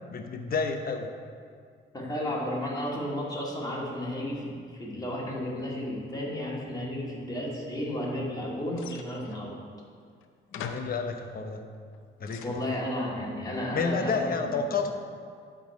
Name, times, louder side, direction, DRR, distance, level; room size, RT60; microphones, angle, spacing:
voice 1, 0.1-1.1 10.6-11.6 12.2-12.6 13.7-14.9, left 4 dB, 50° left, 5 dB, 0.9 m, -30 dB
voice 2, 1.9-9.5 12.4-14.5, left 1 dB, 20° left, -4 dB, 2.2 m, -33 dB
sound 1, 8.7-9.5 10.2-10.3 10.5-11.0 11.7-12.9, left 7 dB, 90° left, 0.6 m, -43 dB
11.0 x 3.9 x 4.8 m, 2.1 s
cardioid pair, 90°, 20 cm